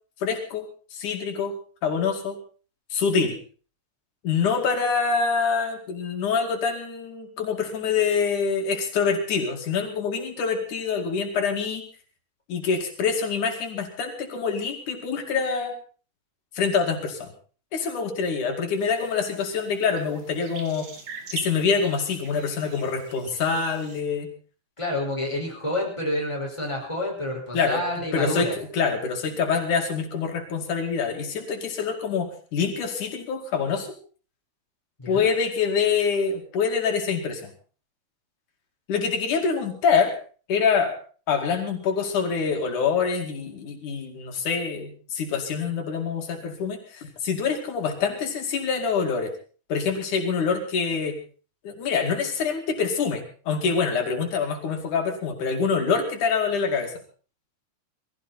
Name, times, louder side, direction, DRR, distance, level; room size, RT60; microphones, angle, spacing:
voice 1, 0.2-1.5 1.8-2.4 2.9-3.4 4.2-11.8 12.5-15.7 16.6-17.3 17.7-20.9 21.3-24.3 27.5-27.8 28.1-33.9 35.1-37.5 38.9-40.2 40.5-41.0 41.3-49.3 49.7-51.2 51.6-56.9, left 5 dB, 90° left, 3 dB, 3.9 m, -25 dB
sound 1, 18.8-24.0, right 4 dB, 70° right, 3.6 m, -43 dB
voice 2, 24.8-28.6 35.0-35.3, left 1 dB, 10° left, -1 dB, 5.2 m, -28 dB
20.5 x 15.5 x 4.3 m, 0.39 s
omnidirectional pair, 3.4 m